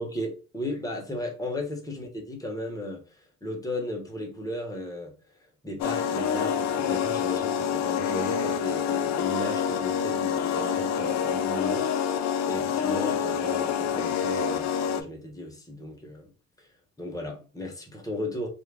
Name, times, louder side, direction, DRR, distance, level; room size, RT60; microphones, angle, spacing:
voice 1, 0.0-5.1 5.6-16.3 16.6-16.7 17.0-18.5, left 1 dB, 10° left, 1.0 m, -35 dB
sound 1, 5.8-15.0, left 7 dB, 65° left, 0.5 m, -27 dB
2.5 x 2.4 x 3.3 m
cardioid pair, 90°, 30 cm